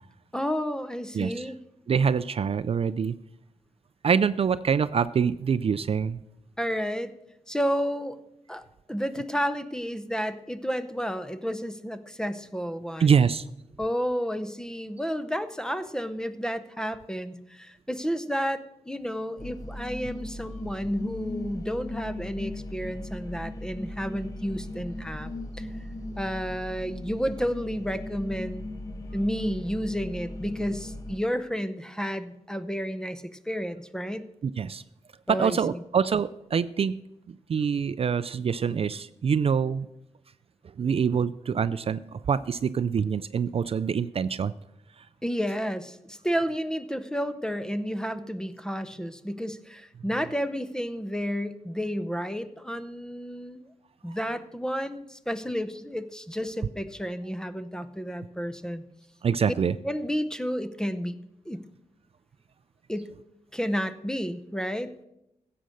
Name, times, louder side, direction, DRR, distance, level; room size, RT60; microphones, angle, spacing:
voice 1, 0.3-1.6 6.6-7.1 7.5-8.2 8.5-13.1 13.8-25.7 26.2-28.7 29.1-34.3 35.3-35.8 45.2-53.6 54.0-58.8 59.5-59.6 59.8-61.1 61.5-61.6 62.9-63.1 63.5-64.9, equal, 5° left, 11 dB, 0.7 m, -31 dB
voice 2, 1.1-1.5 1.9-3.2 4.0-6.2 13.0-13.5 34.4-34.8 35.3-36.9 37.5-39.9 40.8-44.5 59.2-59.8, right 6 dB, 50° right, 15 dB, 0.4 m, -25 dB
sound 1, 19.4-31.2, left 1 dB, 25° left, 1.0 m, -38 dB
15.5 x 7.7 x 6.4 m, 0.87 s
wide cardioid pair, 135°, 13 cm